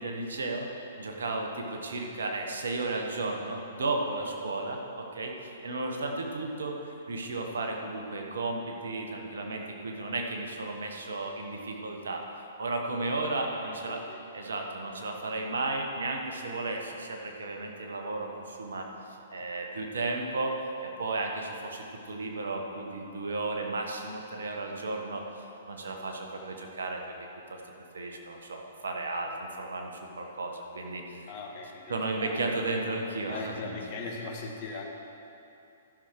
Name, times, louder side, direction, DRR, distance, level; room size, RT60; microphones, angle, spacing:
voice 1, 0.0-12.2 12.6-14.0 14.3-18.9 19.3-20.6 20.8-25.2 25.7-27.1 27.5-27.6 27.9-31.3 31.9-33.8, right 2 dB, 70° right, 2 dB, 1.3 m, -34 dB
voice 2, 9.5-10.1 13.6-14.2 31.3-32.5 33.3-34.8, left 3 dB, 45° left, 0 dB, 1.7 m, -40 dB
14.0 x 6.4 x 4.8 m, 2.8 s
figure-of-eight pair, 115°, 0 cm